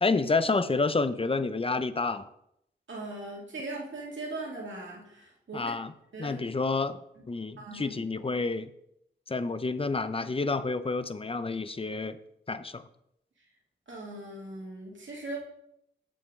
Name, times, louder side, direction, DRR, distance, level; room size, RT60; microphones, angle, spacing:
voice 1, 0.0-2.3 5.5-5.9 6.2-7.0 7.3-8.7 9.3-12.2 12.5-12.9, left 3 dB, 30° left, 12 dB, 0.6 m, -29 dB
voice 2, 2.9-5.7 6.1-6.4 7.2-7.3 7.6-8.0 13.9-15.4, right 2 dB, 85° right, -2 dB, 2.2 m, -39 dB
8.4 x 7.3 x 3.6 m, 0.76 s
wide cardioid pair, 70°, 19 cm